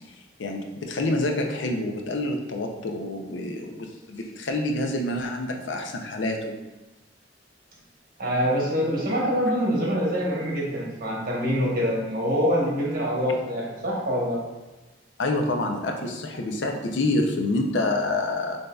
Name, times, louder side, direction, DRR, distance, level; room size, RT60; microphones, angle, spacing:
voice 1, 0.4-6.6 15.2-18.6, left 2 dB, 90° left, 3 dB, 0.6 m, -27 dB
voice 2, 8.2-14.4, equal, 55° right, -3 dB, 1.1 m, -25 dB
6.5 x 2.7 x 2.3 m, 1.1 s
head